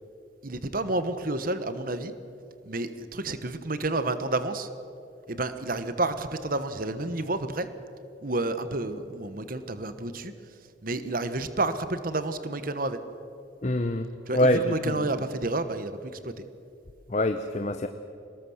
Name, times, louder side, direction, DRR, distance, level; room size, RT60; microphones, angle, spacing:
voice 1, 0.4-2.1 2.6-4.7 5.3-7.7 8.2-10.3 10.8-13.0 14.3-16.4, right 2 dB, 45° right, 11 dB, 1.2 m, -30 dB
voice 2, 13.6-15.2 17.1-17.9, left 1 dB, 35° left, 8 dB, 0.8 m, -25 dB
24.0 x 19.5 x 7.2 m, 2.5 s
head